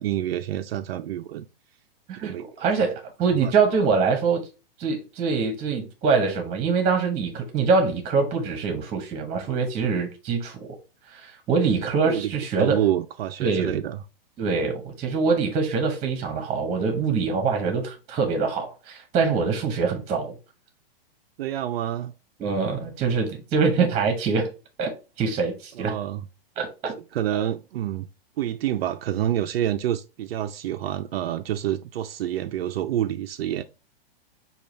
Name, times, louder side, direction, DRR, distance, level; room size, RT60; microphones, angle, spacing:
voice 1, 0.0-1.5 2.2-2.5 3.4-3.5 12.1-12.3 12.6-14.0 21.4-22.1 25.8-26.2 27.1-28.1 28.4-33.6, right 11 dB, 75° right, 0.5 m, -27 dB
voice 2, 2.1-4.4 4.8-10.7 11.1-12.8 13.4-13.8 14.4-20.4 22.4-24.5 24.8-26.0 26.6-26.9, right 5 dB, 20° right, 0.9 m, -24 dB
6.6 x 2.4 x 3.2 m
hypercardioid pair, 135°, 30 cm